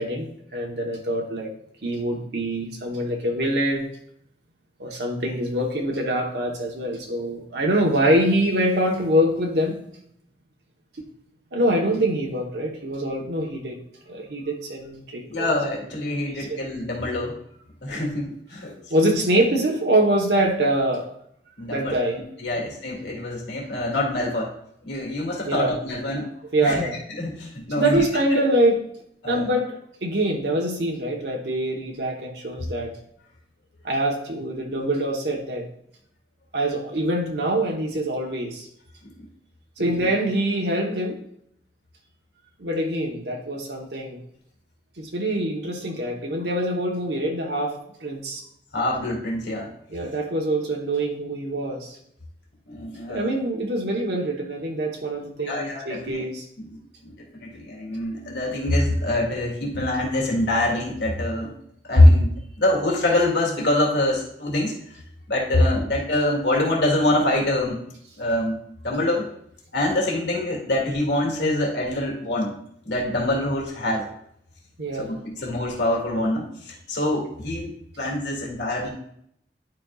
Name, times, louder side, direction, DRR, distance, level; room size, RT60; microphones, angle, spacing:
voice 1, 0.0-1.5 1.8-3.9 4.8-9.8 11.5-13.8 14.1-15.5 16.3-16.7 18.9-21.1 21.7-22.2 25.4-25.7 26.5-27.0 27.8-28.8 29.3-33.0 33.8-35.7 36.5-38.7 39.8-41.2 42.6-44.2 45.0-48.4 49.9-52.0 53.1-56.5 74.8-75.2, right 1 dB, 70° right, 0 dB, 1.0 m, -24 dB
voice 2, 15.3-17.4 17.8-18.2 18.5-18.8 21.6-22.0 22.4-24.5 24.8-26.3 26.6-26.9 27.2-28.0 29.2-29.5 39.8-40.1 48.7-49.7 52.7-53.3 55.5-56.2 56.6-61.5 61.9-64.7 65.3-67.8 68.2-68.6 68.8-69.3 69.7-72.5 72.8-74.1 75.0-78.9, left 1 dB, 80° left, -1 dB, 2.1 m, -24 dB
10.5 x 5.2 x 2.3 m, 0.71 s
head